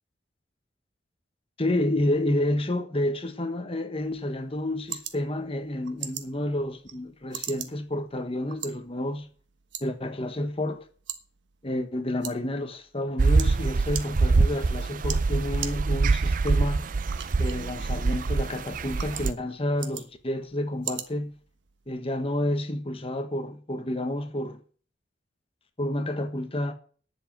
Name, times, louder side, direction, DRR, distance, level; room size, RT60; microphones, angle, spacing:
voice 1, 1.6-9.3 9.8-10.9 11.6-16.9 17.4-21.4 21.9-24.6 25.8-26.7, left 1 dB, 30° left, 1.3 m, -29 dB
sound 1, 4.0-22.0, right 10 dB, 80° right, 1.3 m, -43 dB
sound 2, 13.2-19.3, right 3 dB, 45° right, 0.5 m, -24 dB
10.0 x 7.5 x 9.0 m
head